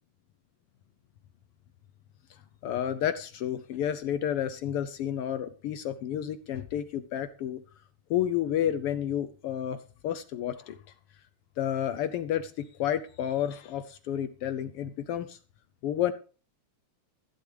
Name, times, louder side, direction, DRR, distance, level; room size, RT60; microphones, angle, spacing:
voice 1, 2.3-7.6 8.1-9.8 10.0-10.8 11.6-15.4 15.8-16.1, left 10 dB, 80° left, 1.3 m, -31 dB
14.5 x 11.5 x 3.4 m
omnidirectional pair, 3.3 m